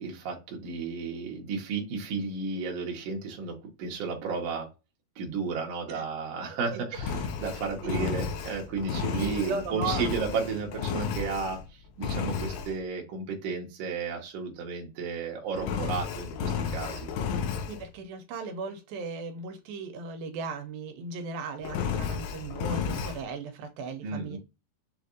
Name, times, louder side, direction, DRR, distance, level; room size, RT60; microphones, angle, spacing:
voice 1, 0.0-4.7 5.2-17.1 24.0-24.4, right 5 dB, 65° right, 1 dB, 1.7 m, -33 dB
Engine, 6.9-11.7 12.0-12.7 15.6-17.8 21.6-23.2, left 6 dB, 85° left, 2.4 m, -32 dB
voice 2, 9.1-10.1 17.6-24.4, right 4 dB, 80° right, 6 dB, 2.4 m, -37 dB
6.4 x 2.5 x 2.5 m, 0.28 s
omnidirectional pair, 4.3 m